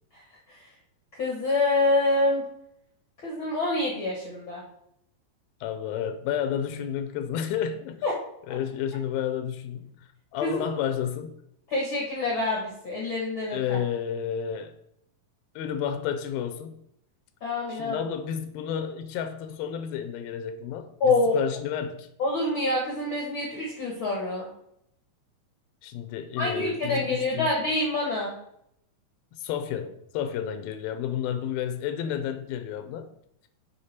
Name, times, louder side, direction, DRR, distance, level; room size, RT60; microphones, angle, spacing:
voice 1, 0.1-0.7 1.2-2.4 3.2-4.6 8.0-8.1 10.4-10.6 11.7-13.8 17.4-18.0 21.0-21.4 22.2-24.5 26.4-28.4, left 2 dB, 60° left, 1.3 m, -26 dB
voice 2, 5.6-8.0 8.5-11.3 13.5-14.7 15.6-16.7 17.7-22.1 25.8-27.5 29.4-33.1, left 9 dB, 85° left, 2.5 m, -31 dB
6.6 x 5.3 x 4.2 m
omnidirectional pair, 4.2 m